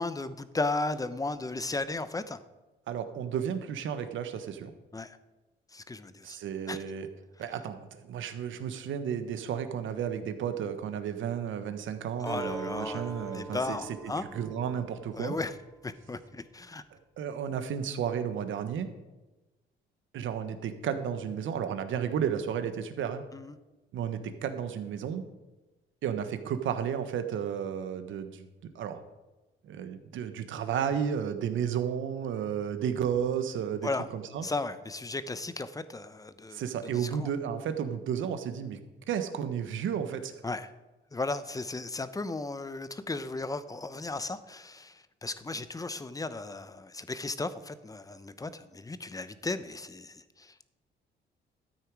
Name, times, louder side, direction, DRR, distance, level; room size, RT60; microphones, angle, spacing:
voice 1, 0.0-2.4 4.9-5.2 5.7-6.4 6.7-6.8 12.2-14.2 15.2-15.5 15.8-16.8 23.3-23.5 33.8-34.1 34.4-36.6 36.9-37.3 40.4-40.7 41.1-50.6, left 3 dB, 15° left, 13 dB, 0.8 m, -35 dB
voice 2, 2.9-4.7 6.2-7.1 7.4-15.3 16.9-18.9 20.1-23.2 23.9-25.2 26.0-29.0 29.6-34.5 36.5-38.8 39.1-40.3, right 8 dB, 75° right, 9 dB, 1.3 m, -33 dB
Acoustic guitar, 12.3-16.1, right 2 dB, 10° right, 3.3 m, -43 dB
13.0 x 9.0 x 4.8 m, 1.1 s
cardioid pair, 90°, 20 cm